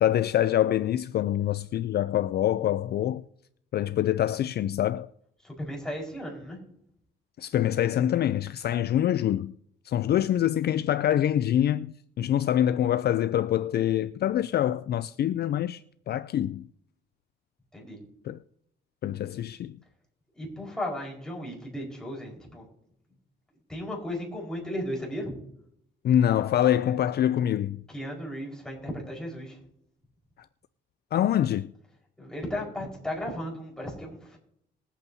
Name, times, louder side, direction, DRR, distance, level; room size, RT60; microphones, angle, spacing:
voice 1, 0.0-3.2 3.7-5.1 7.4-9.5 9.9-15.8 16.1-16.7 18.2-18.4 19.0-19.8 26.0-27.8 31.1-31.7, left 11 dB, 55° left, 0.4 m, -25 dB
voice 2, 5.4-6.6 17.7-18.0 20.3-22.7 23.7-25.4 27.9-29.6 32.2-34.4, left 1 dB, 5° left, 4.6 m, -35 dB
21.0 x 8.3 x 2.7 m
cardioid pair, 90°, 20 cm